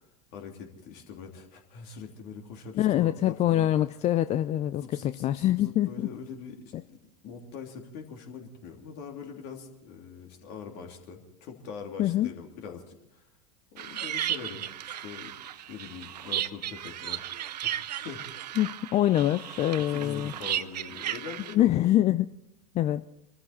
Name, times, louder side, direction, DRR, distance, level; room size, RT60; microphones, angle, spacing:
voice 1, 0.3-3.7 4.8-7.0 7.2-13.3 13.7-15.3 15.7-17.2 17.6-17.7 18.0-18.2 19.8-21.8, left 6 dB, 50° left, 2 dB, 3.1 m, -43 dB
voice 2, 2.8-6.1 12.0-12.3 18.6-20.3 21.5-22.3 22.7-23.1, left 13 dB, 30° left, 13 dB, 0.5 m, -25 dB
sound 1, 13.8-21.5, right 11 dB, 80° right, 0.6 m, -35 dB
25.0 x 13.5 x 4.3 m, 0.81 s
hypercardioid pair, 85°, 21 cm